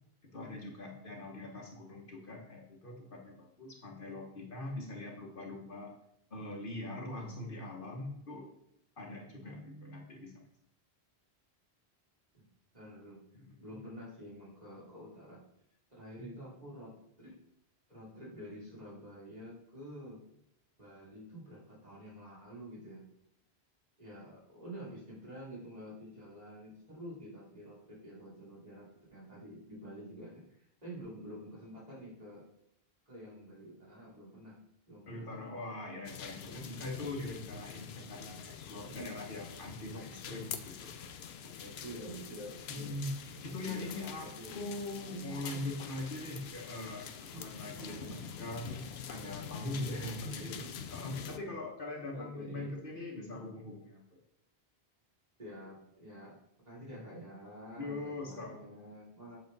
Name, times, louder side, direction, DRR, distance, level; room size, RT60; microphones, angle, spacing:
voice 1, 0.2-5.9 6.3-8.5 9.0-10.3 13.3-13.8 16.2-16.5 35.1-41.0 41.4-42.0 42.7-43.1 43.4-50.6 50.9-54.2 56.8-57.0 57.8-58.7, left 2 dB, 55° left, 0 dB, 1.5 m, -42 dB
voice 2, 9.3-10.1 12.3-12.4 12.7-13.2 13.6-15.4 15.9-17.4 17.9-20.2 20.8-23.0 24.0-32.4 33.0-34.6 34.9-35.3 36.4-36.7 38.9-39.2 39.8-40.4 41.4-43.0 43.2-45.7 47.3-47.4 47.7-48.2 50.1-50.7 51.0-51.4 52.1-52.7 55.4-59.4, equal, 40° right, -6 dB, 3.4 m, -49 dB
sound 1, 36.0-51.4, left 8 dB, 70° left, 0.9 m, -45 dB
8.3 x 6.5 x 4.0 m, 0.75 s
omnidirectional pair, 1.1 m